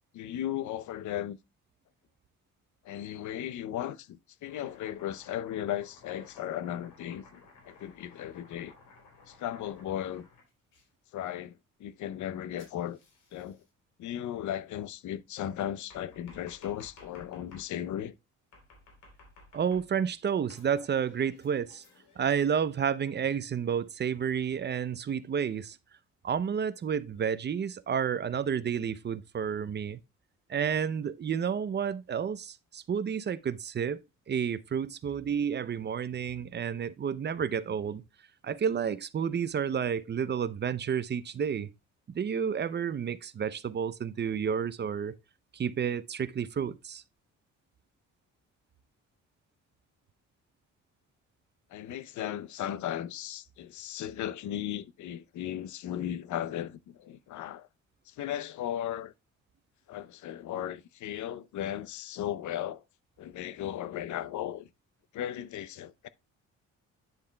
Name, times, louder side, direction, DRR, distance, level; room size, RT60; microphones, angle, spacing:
voice 1, 0.1-1.4 2.8-8.7 9.3-10.3 11.1-13.0 13.3-13.6 14.0-18.1 51.7-57.7 58.1-59.1 59.9-62.8 63.2-64.7 65.1-66.1, left 11 dB, 75° left, 0.6 m, -36 dB
Domestic sounds home sounds, 4.5-10.8 12.6-13.7 15.4-17.7 18.5-20.1 20.5-22.3, left 3 dB, 90° left, 3.4 m, -57 dB
voice 2, 19.5-21.8 22.2-25.8 26.2-30.0 30.5-34.0 34.3-38.0 38.4-41.7 42.1-45.1 45.5-47.0, right 7 dB, 35° right, 0.6 m, -30 dB
9.7 x 7.0 x 2.2 m
cardioid pair, 90°, 30 cm